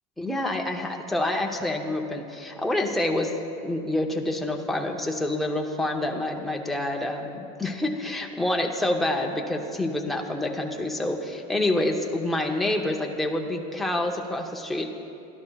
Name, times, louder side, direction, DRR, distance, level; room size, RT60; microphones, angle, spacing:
voice 1, 0.2-3.3 3.6-14.9, left 1 dB, ahead, 0 dB, 0.5 m, -27 dB
22.5 x 12.0 x 2.2 m, 2.6 s
cardioid pair, 180°, 18 cm